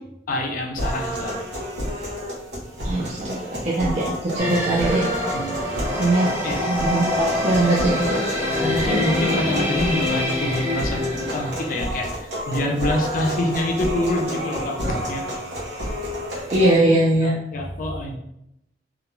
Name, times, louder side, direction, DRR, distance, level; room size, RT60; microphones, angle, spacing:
voice 1, 0.3-1.3 5.3-5.8 6.4-6.6 8.6-15.2 17.2-18.2, left 1 dB, 50° left, 1 dB, 0.5 m, -26 dB
sound 1, 0.8-16.8, equal, 65° right, 1.0 m, -30 dB
voice 2, 2.8-5.4 6.0-8.2 16.5-17.3, right 2 dB, 35° right, -5 dB, 0.4 m, -21 dB
sound 2, 4.4-11.8, left 1 dB, 10° right, 0.7 m, -25 dB
2.3 x 2.2 x 3.0 m, 0.79 s
head